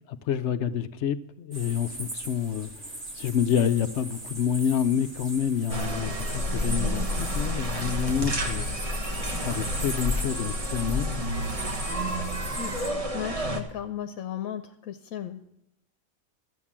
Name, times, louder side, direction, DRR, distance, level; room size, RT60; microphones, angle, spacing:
voice 1, 0.1-8.7 9.3-11.3, left 8 dB, 65° left, 13 dB, 0.8 m, -28 dB
sound 1, 1.5-12.9, right 1 dB, 55° right, 2.6 m, -39 dB
ambience afternoon small village, 5.7-13.6, equal, 25° right, 1.2 m, -30 dB
voice 2, 13.1-15.4, left 9 dB, 80° left, 8 dB, 1.1 m, -35 dB
13.0 x 7.9 x 7.2 m, 0.83 s
omnidirectional pair, 1.4 m